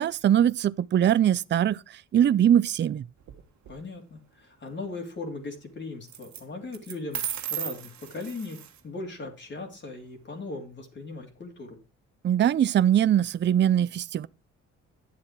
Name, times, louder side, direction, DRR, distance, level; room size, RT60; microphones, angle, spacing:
voice 1, 0.0-1.8 2.1-3.1 12.2-14.3, right 10 dB, 40° right, 0.5 m, -22 dB
sound 1, 3.2-3.7 6.1-6.4 6.7-8.8, right 10 dB, 65° right, 1.6 m, -35 dB
voice 2, 3.7-7.2 7.5-8.6 8.8-11.8, left 3 dB, 40° left, 2.9 m, -38 dB
10.5 x 7.4 x 4.5 m
cardioid pair, 90°, 30 cm